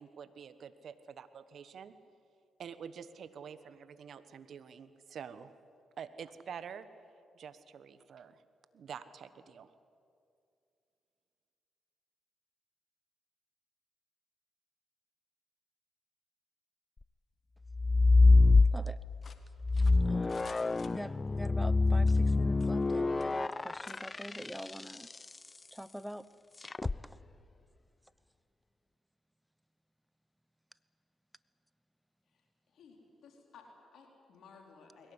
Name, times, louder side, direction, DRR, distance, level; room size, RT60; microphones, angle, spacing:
voice 1, 0.0-1.9 2.6-5.5 6.0-6.9 7.3-8.4 8.7-9.7, right 7 dB, 65° right, 13 dB, 1.2 m, -47 dB
sound 1, 17.7-19.1 19.6-25.1 26.6-27.0, left 3 dB, 30° left, 0.5 m, -25 dB
sound 2, 19.2-21.5 22.0-22.9 23.2-23.3 23.8-24.0, left 5 dB, 50° left, 1.7 m, -55 dB
voice 2, 19.7-20.4 20.9-25.1 25.7-26.2 26.8-26.9, equal, 5° right, 17 dB, 0.9 m, -44 dB
voice 3, 32.7-33.0 33.2-35.1, left 5 dB, 70° left, 1 dB, 4.2 m, -57 dB
21.5 x 17.5 x 9.9 m, 2.5 s
supercardioid pair, 50°, 0 cm